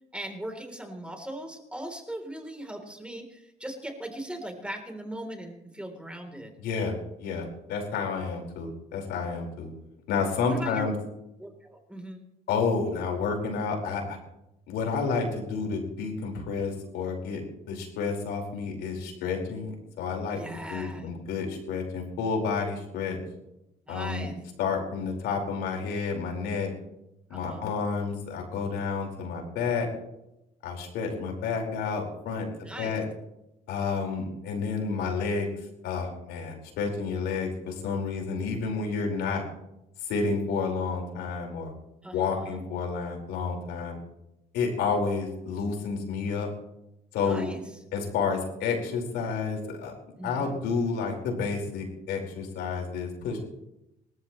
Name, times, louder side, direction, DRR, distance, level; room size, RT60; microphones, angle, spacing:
voice 1, 0.1-6.5 10.5-10.9 11.4-12.2 20.4-21.1 23.9-24.4 27.3-27.6 32.5-33.0 42.0-42.6 47.2-47.6 50.2-50.6, right 1 dB, 5° right, 3 dB, 3.7 m, -39 dB
voice 2, 6.6-6.9 7.2-9.7 10.1-10.9 12.5-14.2 14.7-20.4 20.7-23.2 23.9-24.3 24.6-26.7 27.3-29.9 30.6-32.4 32.8-33.0 33.7-35.5 35.8-39.4 40.0-41.7 42.1-44.0 44.5-46.5 47.1-47.5 47.9-49.9 50.2-53.4, left 5 dB, 85° left, 2 dB, 5.1 m, -30 dB
27.5 x 14.0 x 3.2 m, 0.87 s
cardioid pair, 110°, 17 cm